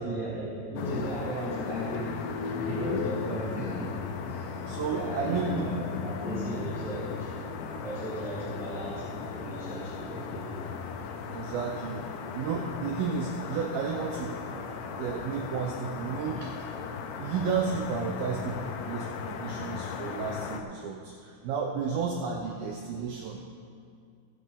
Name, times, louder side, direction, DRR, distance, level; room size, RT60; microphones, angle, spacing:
voice 1, 0.0-2.3 2.6-4.0 4.3-4.6 4.9-5.7 6.0-7.5 7.8-10.7, right 1 dB, ahead, -13 dB, 2.5 m, -36 dB
sound 1, 0.8-20.6, left 6 dB, 90° left, 2.9 m, -36 dB
voice 2, 4.7-5.7 11.3-12.1 12.3-14.4 14.9-16.5 17.2-23.4, right 6 dB, 75° right, 1 dB, 2.4 m, -32 dB
17.5 x 10.0 x 3.7 m, 2.3 s
omnidirectional pair, 4.7 m